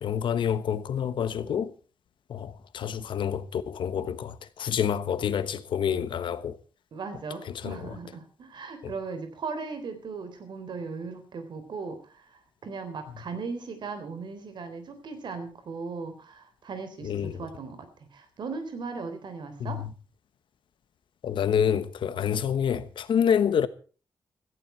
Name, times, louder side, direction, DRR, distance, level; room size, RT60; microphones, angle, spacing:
voice 1, 0.0-1.7 2.3-6.6 7.5-7.7 8.8-8.9 17.0-17.4 19.6-19.9 21.2-23.7, left 8 dB, 85° left, 1.1 m, -27 dB
voice 2, 6.9-19.8, right 4 dB, 70° right, 3.7 m, -38 dB
17.0 x 15.0 x 4.5 m
wide cardioid pair, 120°, 8 cm